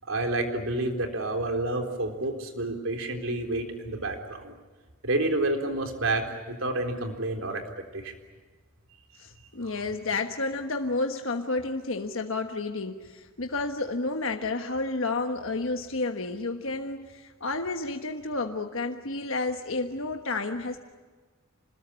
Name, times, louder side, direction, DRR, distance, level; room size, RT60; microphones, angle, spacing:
voice 1, 0.1-4.5 5.0-7.6 7.9-8.1 9.6-9.8, right 2 dB, 70° right, 5 dB, 3.8 m, -29 dB
voice 2, 9.2-20.8, left 3 dB, 65° left, 4 dB, 1.4 m, -31 dB
27.0 x 20.5 x 9.9 m, 1.4 s
head